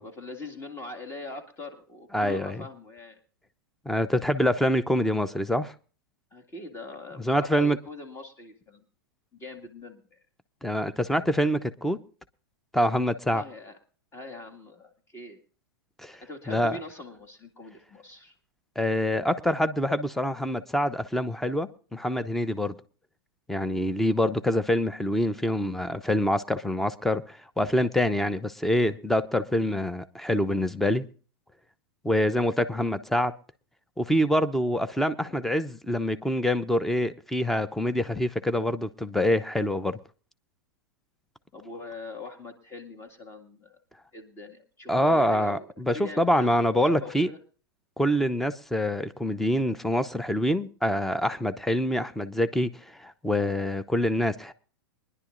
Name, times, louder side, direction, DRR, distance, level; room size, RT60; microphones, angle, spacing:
voice 1, 0.0-3.2 6.3-8.9 9.3-10.2 13.3-13.8 14.1-15.4 16.2-18.3 35.3-35.4 41.5-43.8 44.1-45.7 45.9-47.4, left 2 dB, 20° left, 2.1 m, -42 dB
voice 2, 2.1-2.6 3.9-5.7 7.2-7.8 10.6-12.0 12.7-13.4 16.0-16.2 16.5-16.8 18.8-22.7 23.5-31.0 32.0-33.3 34.0-40.0 44.9-47.3 48.0-54.5, left 1 dB, ahead, 0.8 m, -25 dB
23.5 x 11.0 x 2.6 m
figure-of-eight pair, 100°, 12 cm